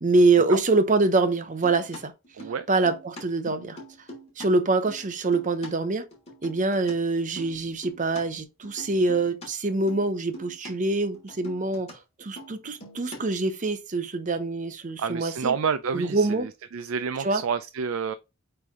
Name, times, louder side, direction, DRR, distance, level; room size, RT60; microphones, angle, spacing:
voice 1, 0.0-2.1 2.7-3.8 4.4-6.0 6.4-11.9 12.2-15.5 15.9-16.5 17.2-17.4, right 3 dB, 40° right, 0.8 m, -24 dB
sound 1, 1.4-4.5 4.7-5.7 6.1-6.9 7.2-8.2 8.6-9.5 9.9-10.1 10.3-10.7 11.0-11.9 12.2-13.4, equal, 30° left, 3.0 m, -43 dB
voice 2, 15.0-16.3 16.7-18.1, right 6 dB, 90° right, 0.4 m, -28 dB
8.3 x 3.3 x 3.7 m
head